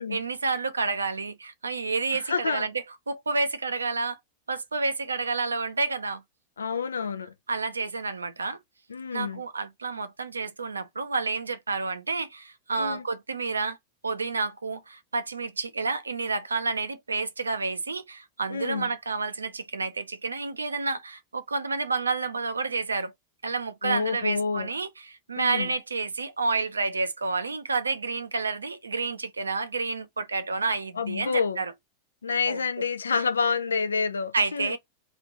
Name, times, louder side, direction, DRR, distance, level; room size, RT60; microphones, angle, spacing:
voice 1, 0.0-4.2 4.5-6.2 7.5-8.6 9.1-13.8 14.0-23.1 23.4-31.7 32.5-32.9 34.3-34.8, right 4 dB, 75° right, 0.5 m, -30 dB
voice 2, 2.1-2.7 6.6-7.3 8.9-9.4 12.7-13.0 18.5-18.9 23.8-24.7 25.4-25.7 31.0-31.6 32.2-34.8, left 5 dB, 70° left, 0.4 m, -28 dB
3.0 x 2.4 x 4.1 m
figure-of-eight pair, 90°, 0 cm